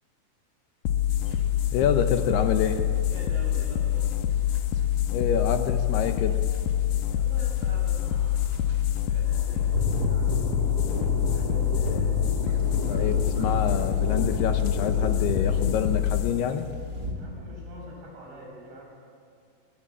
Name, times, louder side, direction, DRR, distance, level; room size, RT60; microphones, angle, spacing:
sound 1, 0.8-17.9, left 11 dB, 90° left, 1.9 m, -26 dB
sound 2, 1.0-17.1, equal, 25° right, 2.7 m, -34 dB
voice 1, 1.7-2.8 5.1-6.4 12.7-16.7, left 8 dB, 75° left, 7 dB, 2.7 m, -27 dB
voice 2, 3.1-4.1 7.0-10.5 11.3-12.0 17.1-18.9, right 1 dB, 90° right, -1 dB, 9.1 m, -45 dB
25.5 x 21.0 x 8.9 m, 2.3 s
omnidirectional pair, 5.3 m